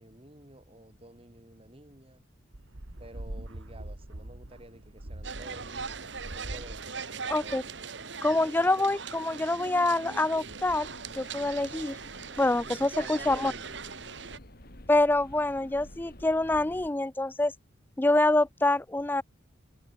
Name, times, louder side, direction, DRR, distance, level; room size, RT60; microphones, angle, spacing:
voice 1, 0.0-2.2 3.0-6.0 6.3-8.4 11.7-12.0 12.5-13.7, right 1 dB, 30° right, 3.3 m, -51 dB
sound 1, 2.5-8.0, right 1 dB, 90° right, 2.4 m, -43 dB
sound 2, 5.2-14.4, right 5 dB, 60° right, 1.5 m, -40 dB
voice 2, 7.3-7.6 8.2-10.9 11.2-12.0 12.4-13.5 14.9-17.5 18.0-19.2, left 2 dB, 10° left, 0.3 m, -26 dB
sound 3, 10.4-16.9, left 1 dB, 50° left, 3.3 m, -50 dB
head